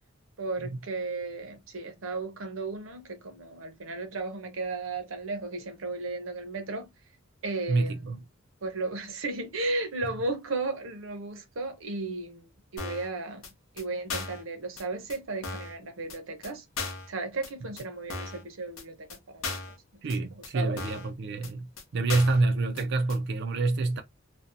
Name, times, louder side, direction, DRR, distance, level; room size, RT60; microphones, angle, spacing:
voice 1, 0.4-6.9 7.4-8.1 8.6-13.5 13.7-16.6 17.1-19.6 19.9-20.0 20.3-20.8, right 3 dB, 80° right, 0.7 m, -35 dB
voice 2, 7.7-8.2 20.0-21.7 21.9-24.0, right 3 dB, 55° right, 0.4 m, -27 dB
sound 1, 12.8-13.1 13.4-13.5 13.8-13.9 14.1-14.4 14.8-14.9 15.1-15.2 15.4-15.8 16.1-16.2 16.4-16.5 16.8-17.1 17.4-17.5 17.8-17.9 18.1-18.4 18.8-18.9 19.1-19.2 19.4-19.8 20.1-20.2 20.4-20.5 20.8-21.1 21.4-21.5 21.8-21.9 22.1-22.4 22.8-22.9 23.1-23.2, left 3 dB, 90° left, 0.8 m, -36 dB
2.6 x 2.1 x 2.5 m
head